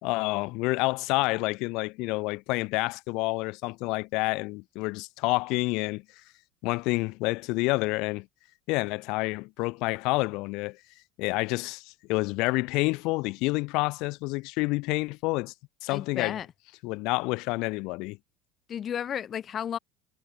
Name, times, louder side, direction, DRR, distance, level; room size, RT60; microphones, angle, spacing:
voice 1, 0.0-6.0 6.6-8.3 8.7-10.8 11.2-15.5 15.8-16.4 16.8-18.2, left 24 dB, 65° left, 3.0 m, -28 dB
voice 2, 15.9-16.5 18.7-19.8, left 9 dB, 45° left, 4.6 m, -33 dB
hypercardioid pair, 70°, 0 cm